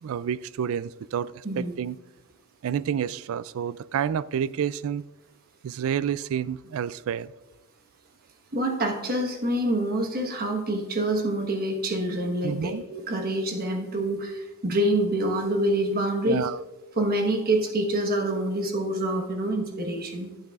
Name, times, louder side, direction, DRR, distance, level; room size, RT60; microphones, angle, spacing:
voice 1, 0.0-2.0 2.6-5.0 5.6-7.3 12.4-12.8 16.2-16.6, right 8 dB, 70° right, 19 dB, 0.3 m, -29 dB
voice 2, 8.5-16.5 17.0-20.3, right 1 dB, 45° right, 3 dB, 1.2 m, -26 dB
11.5 x 8.8 x 2.4 m, 1.2 s
head